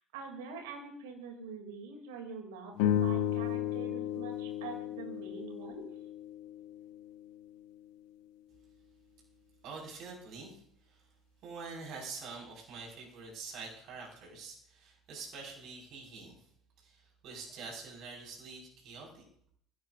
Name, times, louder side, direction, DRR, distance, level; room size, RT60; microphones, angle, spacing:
voice 1, 0.1-5.9, right 5 dB, 65° right, 4 dB, 3.1 m, -45 dB
sound 1, 2.7-7.3, left 11 dB, 60° left, 1.3 m, -34 dB
voice 2, 9.6-11.0 11.4-16.5 16.8-19.2, right 4 dB, 50° right, -2 dB, 5.7 m, -46 dB
22.0 x 16.0 x 2.7 m, 0.64 s
figure-of-eight pair, 60°, 0 cm